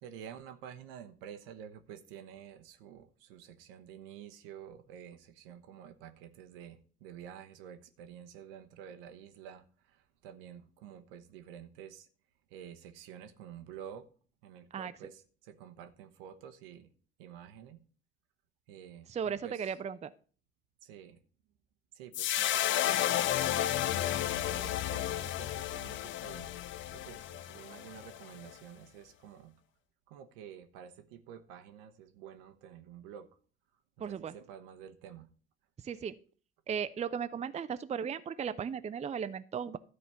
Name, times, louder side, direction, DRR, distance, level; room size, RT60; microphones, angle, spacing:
voice 1, 0.0-12.1 12.5-14.1 14.4-16.9 17.2-17.8 18.7-19.7 20.8-21.2 21.9-26.5 26.9-29.5 30.1-33.3 34.0-35.3, right 9 dB, 65° right, 1.0 m, -50 dB
voice 2, 19.1-20.1 34.0-34.3 35.8-36.2 36.7-39.8, right 7 dB, 20° right, 0.5 m, -36 dB
sound 1, 22.1-28.5, left 13 dB, 40° left, 0.5 m, -32 dB
12.5 x 4.3 x 6.9 m
figure-of-eight pair, 50°, 30 cm